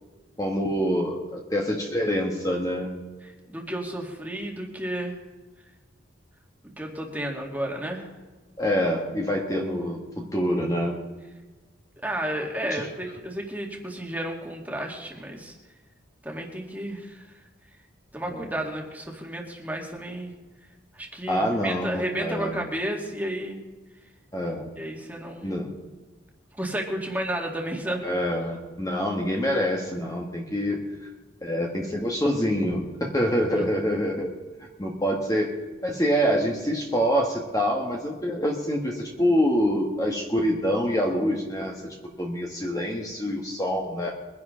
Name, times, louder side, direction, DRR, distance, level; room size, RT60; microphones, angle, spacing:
voice 1, 0.4-2.9 8.6-11.0 12.6-12.8 18.3-18.5 21.3-22.7 24.3-24.7 25.4-25.7 28.0-30.8 31.4-34.3 34.8-35.5 35.8-41.8 42.2-44.1, equal, 20° left, -1 dB, 1.4 m, -26 dB
voice 2, 3.2-5.2 6.8-8.1 12.0-15.5 16.2-17.4 18.1-20.3 20.9-23.6 24.8-25.6 26.6-28.0 33.6-33.8, right 1 dB, 10° right, 0 dB, 2.0 m, -32 dB
22.5 x 10.5 x 3.8 m, 1.3 s
head